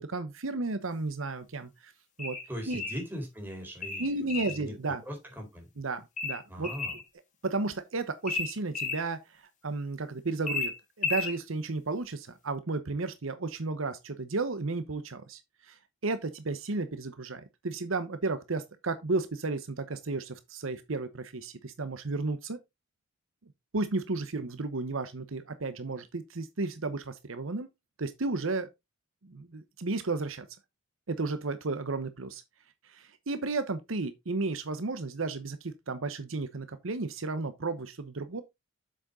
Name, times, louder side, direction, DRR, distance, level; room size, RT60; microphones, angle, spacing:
voice 1, 0.0-1.9 2.2-2.4 2.7-2.8 4.0-5.0 5.8-6.7 7.4-10.7 11.0-22.6 23.7-27.7 28.0-28.7 29.2-30.5 31.1-32.4 32.9-38.4, right 3 dB, 70° right, 0.9 m, -33 dB
sound 1, 2.2-3.0 3.8-4.6 6.2-7.0 8.3-9.0 10.5-11.4, left 4 dB, 35° left, 1.6 m, -33 dB
voice 2, 2.5-5.7 6.5-7.0, equal, 10° right, 3.9 m, -40 dB
7.6 x 6.3 x 3.8 m
head